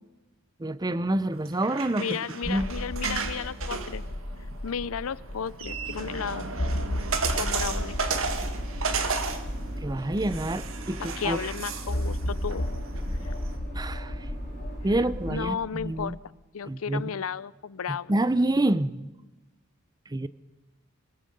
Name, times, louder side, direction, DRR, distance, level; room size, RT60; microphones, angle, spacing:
voice 1, 0.6-2.2 2.5-2.7 9.8-11.4 13.7-14.2 14.8-16.2 16.6-17.1 17.9-19.1 20.1-20.3, right 1 dB, 20° right, 0.6 m, -27 dB
sound 1, 1.3-13.6, right 4 dB, 65° right, 1.7 m, -34 dB
voice 2, 2.0-4.0 4.6-6.5 7.4-8.0 11.0-12.7 15.3-16.2 16.5-18.2, left 7 dB, 70° left, 0.6 m, -33 dB
sound 2, 2.4-5.7 6.0-6.1 6.5-11.1 11.9-16.2, left 1 dB, 45° left, 1.3 m, -34 dB
sound 3, 5.6-15.5, right 1 dB, 45° right, 6.2 m, -39 dB
24.0 x 21.0 x 5.4 m
head